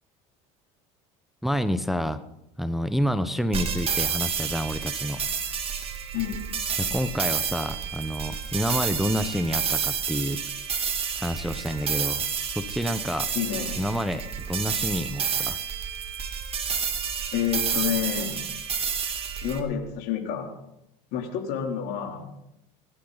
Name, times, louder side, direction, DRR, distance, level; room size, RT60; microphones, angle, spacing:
voice 1, 1.4-2.2 2.6-5.2 6.8-10.4 11.2-13.3 13.8-15.6, equal, ahead, 11 dB, 1.0 m, -28 dB
sound 1, 3.5-19.6, right 7 dB, 35° right, 2.8 m, -30 dB
voice 2, 13.3-13.8 17.3-18.4 19.4-20.5 21.1-22.3, left 9 dB, 70° left, 3 dB, 3.4 m, -29 dB
25.5 x 12.0 x 4.1 m, 0.83 s
supercardioid pair, 90°, 17 cm